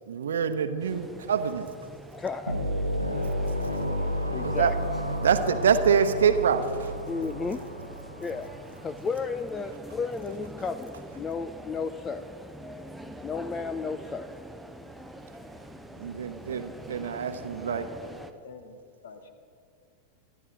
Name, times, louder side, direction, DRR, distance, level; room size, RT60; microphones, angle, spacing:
voice 1, 0.1-1.7 4.4-4.7 5.2-6.9 16.0-17.9, right 7 dB, 65° right, 10 dB, 1.0 m, -25 dB
sound 1, 0.8-18.3, right 1 dB, ahead, 0.8 m, -45 dB
voice 2, 2.1-2.7 4.3-4.7 7.1-7.6 8.2-8.5 8.8-12.3 13.2-14.3, left 4 dB, 20° left, 12 dB, 0.5 m, -33 dB
sound 2, 2.5-8.9, equal, 90° right, 1.2 m, -31 dB
voice 3, 17.2-19.3, left 4 dB, 60° left, 9 dB, 1.4 m, -47 dB
25.0 x 12.5 x 3.9 m, 2.3 s
figure-of-eight pair, 90°, 0 cm